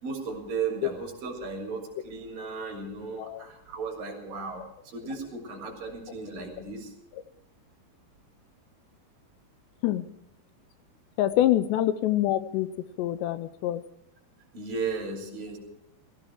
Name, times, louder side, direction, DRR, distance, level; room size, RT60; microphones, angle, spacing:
voice 1, 0.0-6.9 14.5-15.6, right 4 dB, 55° right, 1 dB, 4.4 m, -35 dB
voice 2, 11.2-12.7 13.0-13.8, left 13 dB, 80° left, 13 dB, 2.8 m, -25 dB
16.5 x 16.0 x 4.5 m, 0.77 s
omnidirectional pair, 5.1 m